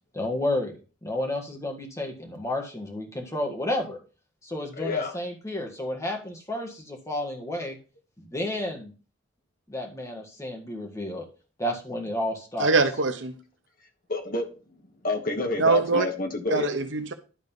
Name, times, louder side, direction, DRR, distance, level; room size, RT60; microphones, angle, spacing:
voice 1, 0.1-0.7 1.0-4.0 4.4-7.8 8.2-8.9 9.7-11.3 11.6-12.7, left 1 dB, 15° left, 1.8 m, -31 dB
voice 2, 4.8-5.1 14.1-16.7, left 3 dB, 45° left, 1.4 m, -29 dB
voice 3, 12.6-13.4 15.6-16.1 16.5-17.1, right 3 dB, 65° right, 1.0 m, -23 dB
11.5 x 4.0 x 5.4 m
head